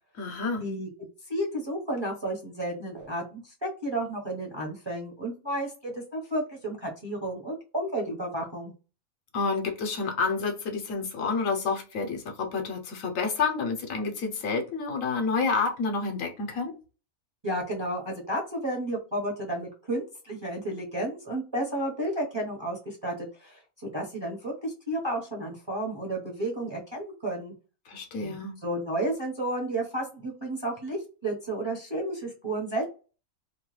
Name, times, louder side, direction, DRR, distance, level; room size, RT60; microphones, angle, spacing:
voice 1, 0.2-0.6 9.3-16.7 27.9-28.5, left 4 dB, 70° left, 4 dB, 1.1 m, -29 dB
voice 2, 1.3-8.7 17.4-27.5 28.2-28.3 28.6-32.9, right 1 dB, 25° right, -1 dB, 0.6 m, -32 dB
2.8 x 2.2 x 3.1 m, 0.33 s
omnidirectional pair, 1.5 m